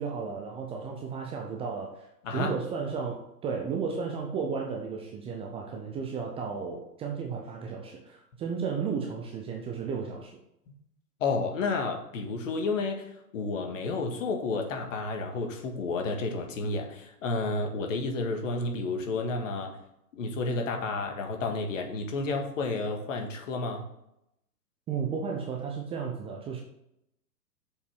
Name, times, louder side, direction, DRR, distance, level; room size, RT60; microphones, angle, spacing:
voice 1, 0.0-2.1 2.3-10.4 24.9-26.6, right 5 dB, 10° right, 1 dB, 0.6 m, -34 dB
voice 2, 2.2-2.6 11.2-19.8 20.1-23.9, left 3 dB, 50° left, 3 dB, 1.9 m, -31 dB
7.1 x 5.5 x 5.8 m, 0.80 s
figure-of-eight pair, 115°, 48 cm